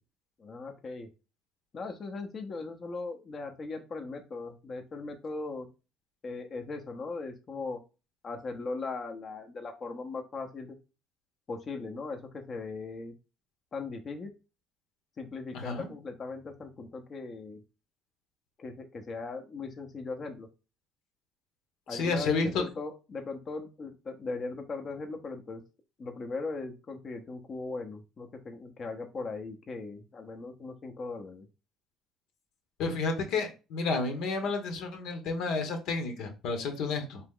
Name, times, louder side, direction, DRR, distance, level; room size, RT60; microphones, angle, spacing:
voice 1, 0.4-1.1 1.7-5.7 6.2-7.8 8.2-10.8 11.5-13.1 13.7-14.3 15.2-17.6 18.6-20.5 21.9-25.6 26.0-31.5, left 3 dB, 40° left, 3 dB, 0.8 m, -38 dB
voice 2, 21.9-22.6 32.8-37.2, left 4 dB, 75° left, 4 dB, 1.1 m, -31 dB
4.3 x 3.0 x 3.7 m, 0.30 s
cardioid pair, 105°, 0 cm